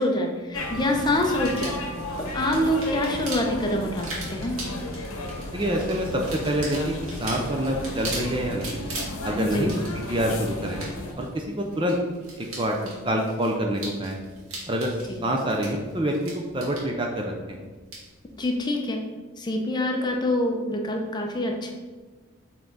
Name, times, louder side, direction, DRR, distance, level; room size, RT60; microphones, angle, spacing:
voice 1, 0.0-1.8 2.3-4.6 9.3-9.7 15.1-15.2 18.4-19.0 19.4-21.7, left 1 dB, 20° left, 2 dB, 0.6 m, -26 dB
sound 1, 0.5-11.1, left 1 dB, 80° left, 0.9 m, -34 dB
sound 2, 1.4-18.6, right 2 dB, 80° right, 1.9 m, -40 dB
voice 2, 5.5-6.9 7.2-8.8 9.2-9.7 10.1-10.8 11.2-12.0 12.4-14.2 14.7-14.9 15.2-17.6, right 1 dB, 20° right, 1 dB, 0.5 m, -26 dB
7.0 x 3.7 x 3.9 m, 1.3 s
head